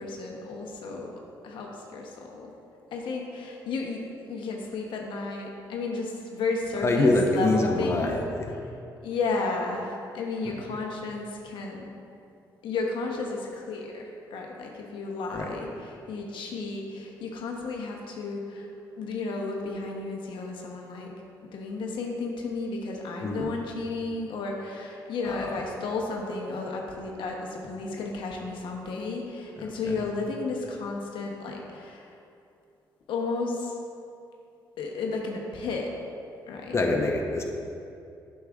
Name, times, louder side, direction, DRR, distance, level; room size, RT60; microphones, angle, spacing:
voice 1, 0.0-2.5 2.9-8.1 9.0-11.9 12.6-18.7 19.0-21.1 21.4-32.1 33.1-33.7 34.8-35.9 36.5-37.0, left 3 dB, 75° left, 0 dB, 0.8 m, -33 dB
voice 2, 6.8-8.1 8.4-8.5 15.3-15.5 23.2-23.5 25.4-25.5 36.7-37.4, left 2 dB, 30° left, 1 dB, 0.8 m, -24 dB
7.8 x 6.4 x 2.4 m, 2.6 s
supercardioid pair, 70°, 8 cm